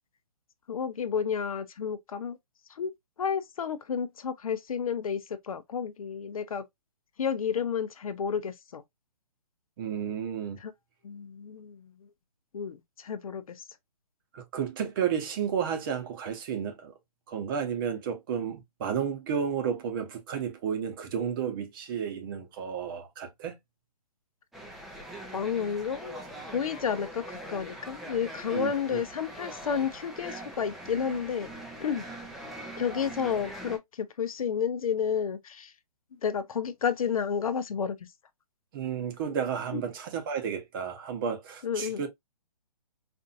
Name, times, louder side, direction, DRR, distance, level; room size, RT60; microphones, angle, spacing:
voice 1, 0.7-2.4 2.7-2.9 3.2-6.6 7.2-8.8 10.6-10.7 11.0-11.9 12.5-13.6 25.3-26.1 26.5-31.5 31.8-32.0 32.8-35.7 36.2-38.0 39.7-39.8 41.6-42.0, left 7 dB, 60° left, 0.6 m, -31 dB
voice 2, 9.8-10.6 14.3-16.9 17.3-23.5 28.5-29.0 38.7-42.1, right 7 dB, 35° right, 0.9 m, -32 dB
sound 1, 24.5-33.8, right 1 dB, ahead, 0.5 m, -42 dB
4.3 x 2.6 x 2.4 m
figure-of-eight pair, 140°, 20 cm